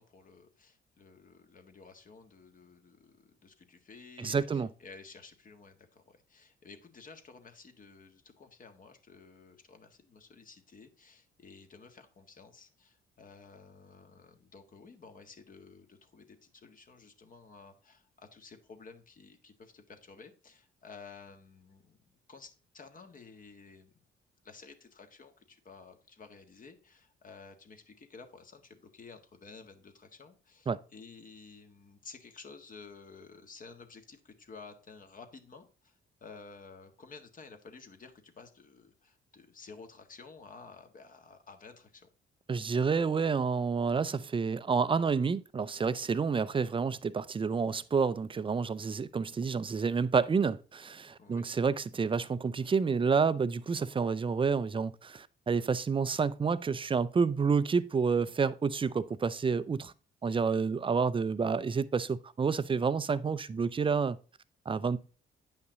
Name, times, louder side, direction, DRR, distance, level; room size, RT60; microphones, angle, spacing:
voice 1, 0.0-23.9 24.4-42.1 51.2-51.5, left 4 dB, 45° left, 1.7 m, -53 dB
voice 2, 4.2-4.7 30.7-30.8 42.5-59.9 60.2-64.2 64.7-65.0, right 5 dB, 25° right, 0.5 m, -29 dB
9.3 x 5.6 x 3.9 m
cardioid pair, 90°, 20 cm